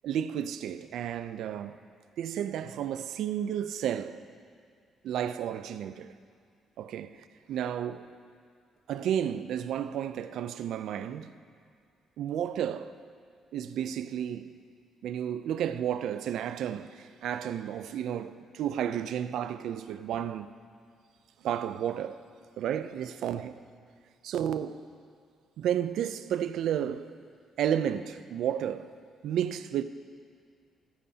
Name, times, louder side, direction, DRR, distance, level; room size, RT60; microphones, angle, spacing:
voice 1, 0.0-1.8 2.2-4.2 5.0-6.1 6.8-8.1 8.9-11.3 12.2-13.0 13.5-14.6 15.0-20.5 21.4-22.2 22.6-23.6 24.2-24.9 25.6-27.1 27.6-28.9 29.2-29.8, right 9 dB, 80° right, 0.4 m, -32 dB
22.0 x 9.6 x 2.8 m
cardioid pair, 90°, 0 cm